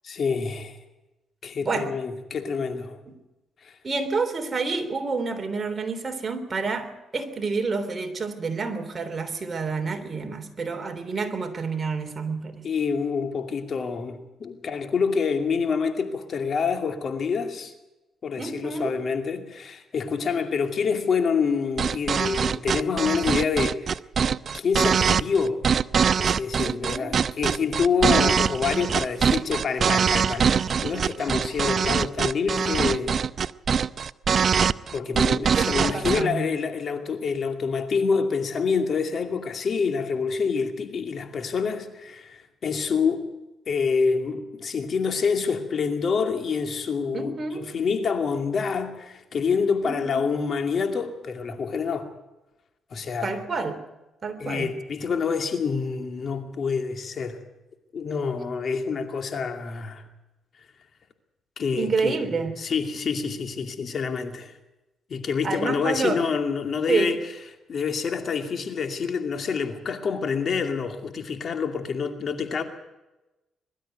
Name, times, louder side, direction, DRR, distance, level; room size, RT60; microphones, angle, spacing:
voice 1, 0.0-0.8 1.4-3.0 3.6-3.8 12.6-17.7 18.2-23.9 24.5-25.6 26.2-33.2 34.9-43.3 43.7-52.1 52.9-53.4 54.4-57.4 57.9-60.0 61.6-62.2 62.6-64.5 65.1-67.2 67.7-72.6, left 5 dB, 50° left, 2.4 m, -27 dB
voice 2, 3.8-12.7 18.4-19.0 26.6-27.2 35.6-36.5 47.1-47.7 49.8-50.2 53.2-53.8 54.2-54.8 61.7-62.6 65.4-66.2 66.9-67.2, right 4 dB, 35° right, 3.4 m, -29 dB
sound 1, 21.8-36.2, right 6 dB, 50° right, 0.6 m, -23 dB
22.0 x 13.0 x 9.2 m
cardioid pair, 90°, 0 cm